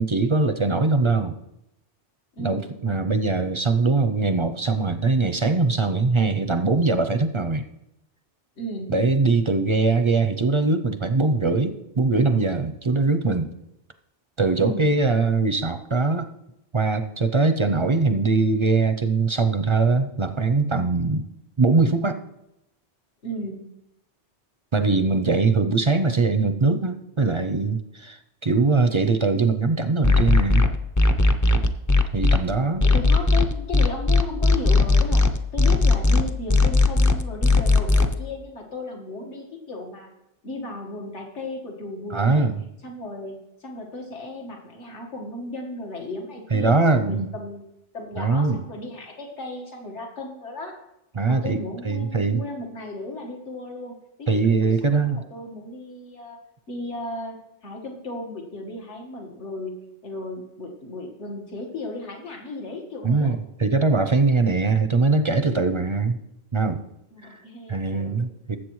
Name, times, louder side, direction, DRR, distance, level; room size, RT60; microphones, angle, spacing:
voice 1, 0.0-1.3 2.4-7.7 8.9-13.5 14.4-16.3 16.7-21.3 21.6-22.2 24.7-30.6 32.1-32.8 42.1-42.6 46.5-47.3 48.2-48.6 51.2-51.6 51.8-52.4 54.3-55.2 63.0-66.2 66.5-66.8 67.3-67.4 67.7-68.6, right 3 dB, 40° right, 9 dB, 0.4 m, -21 dB
voice 2, 2.4-2.7 8.6-8.9 14.6-14.9 23.2-23.6 32.8-40.1 40.4-42.5 42.8-50.8 51.3-57.4 57.6-63.3 67.1-68.2, left 2 dB, 85° left, 1 dB, 2.0 m, -35 dB
sound 1, 30.0-32.4 32.8-38.1, left 3 dB, 25° left, 0.4 m, -17 dB
19.5 x 7.8 x 3.1 m, 0.86 s
omnidirectional pair, 1.2 m